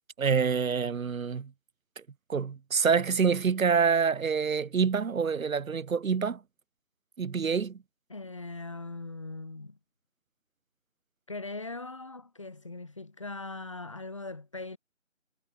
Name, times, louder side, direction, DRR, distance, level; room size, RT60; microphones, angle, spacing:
voice 1, 0.2-1.5 2.0-2.1 2.3-6.4 7.2-7.8, right 6 dB, 80° right, 0.9 m, -26 dB
voice 2, 8.1-9.8 11.3-14.8, left 3 dB, 25° left, 1.2 m, -40 dB
figure-of-eight pair, 170°, 40 cm